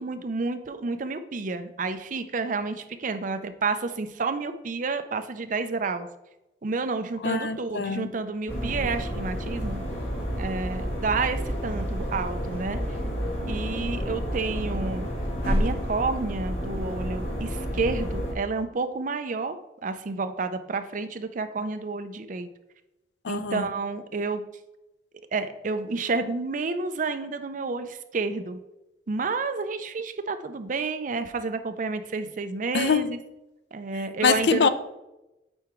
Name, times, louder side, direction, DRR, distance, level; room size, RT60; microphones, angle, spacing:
voice 1, 0.0-6.1 6.6-9.8 10.4-12.8 13.5-15.1 15.4-19.6 19.8-22.5 23.3-24.4 25.3-28.6 29.1-33.2 33.7-34.7, right 4 dB, 50° right, 0.5 m, -30 dB
voice 2, 7.2-8.1 23.2-23.7 32.7-33.1 34.2-34.7, left 5 dB, 70° left, 0.4 m, -24 dB
sound 1, 8.5-18.3, equal, 90° left, 2.3 m, -30 dB
8.6 x 4.6 x 3.1 m
head